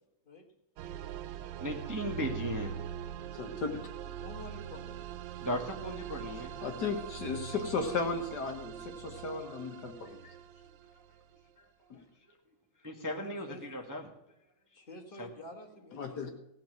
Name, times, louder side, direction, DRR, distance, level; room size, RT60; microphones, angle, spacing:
sound 1, 0.8-11.4, right 10 dB, 75° right, 1.2 m, -43 dB
voice 1, 1.6-2.9 5.4-6.6 11.6-11.7 12.8-14.1 15.2-15.3, equal, 10° right, 1 dB, 1.1 m, -37 dB
voice 2, 3.3-3.9 6.6-10.4 11.9-12.0 15.9-16.3, left 4 dB, 60° left, 5 dB, 1.6 m, -35 dB
voice 3, 4.2-5.0 5.3-5.4 12.9-13.6 14.7-16.3, left 1 dB, 30° left, 3 dB, 1.6 m, -49 dB
17.0 x 5.9 x 7.5 m, 0.83 s
omnidirectional pair, 2.1 m